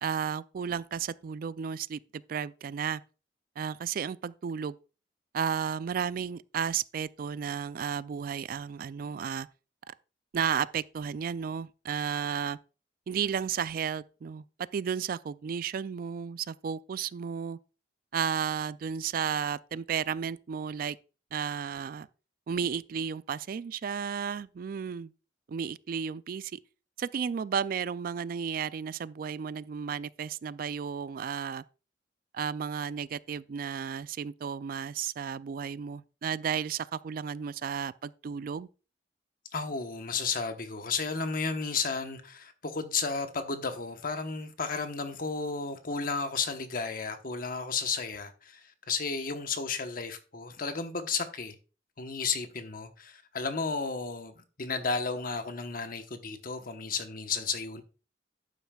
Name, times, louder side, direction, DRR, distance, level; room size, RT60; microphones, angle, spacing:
voice 1, 0.0-3.0 3.6-4.8 5.3-9.5 9.9-10.0 10.3-12.6 13.1-14.4 14.7-17.6 18.1-21.0 21.3-22.1 22.5-25.1 25.5-26.6 27.0-31.6 32.3-38.7, right 7 dB, 50° right, 0.3 m, -33 dB
voice 2, 39.5-51.6 52.0-57.8, left 4 dB, 55° left, 1.1 m, -33 dB
11.5 x 9.1 x 2.3 m
head